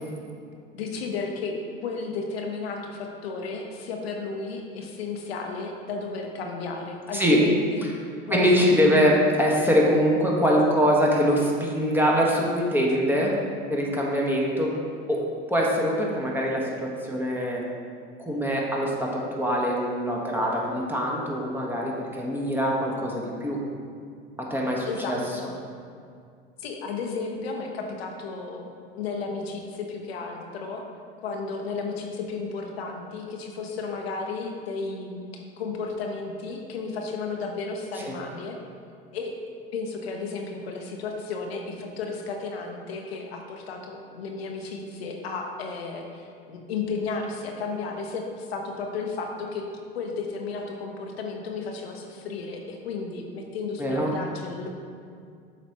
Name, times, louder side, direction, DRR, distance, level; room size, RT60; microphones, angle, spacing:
voice 1, 0.7-1.6 1.8-7.6 8.3-9.0 24.9-25.5 26.6-30.8 31.2-38.6 39.1-39.4 39.7-49.6 49.9-54.7, left 4 dB, 85° left, 2 dB, 0.8 m, -33 dB
voice 2, 8.3-13.3 13.7-14.7 15.1-17.6 18.2-23.6 24.5-25.2 37.9-38.1 53.8-54.1, equal, 5° right, -3 dB, 1.3 m, -23 dB
7.4 x 5.0 x 2.9 m, 2.3 s
hypercardioid pair, 75°, 30 cm